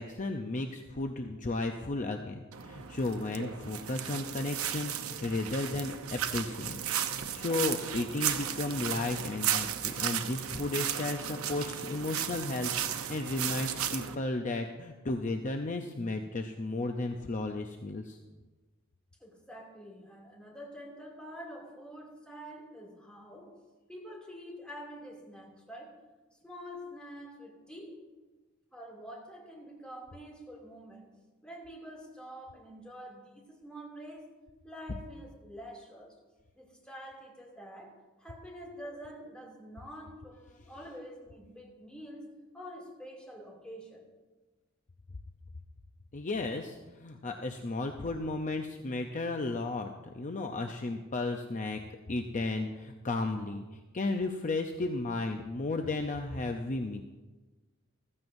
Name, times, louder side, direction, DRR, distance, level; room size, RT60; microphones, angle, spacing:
voice 1, 0.0-18.2 46.1-51.8 52.1-53.6 53.9-57.0, left 2 dB, 35° left, 4 dB, 0.6 m, -34 dB
sound 1, 2.5-14.2, right 9 dB, 75° right, 0.8 m, -35 dB
voice 2, 19.2-23.6 23.9-26.0 26.4-28.1 28.7-31.1 31.4-34.3 34.6-36.2 36.5-44.1, equal, 5° left, -2 dB, 2.6 m, -47 dB
15.0 x 14.0 x 2.6 m, 1.2 s
head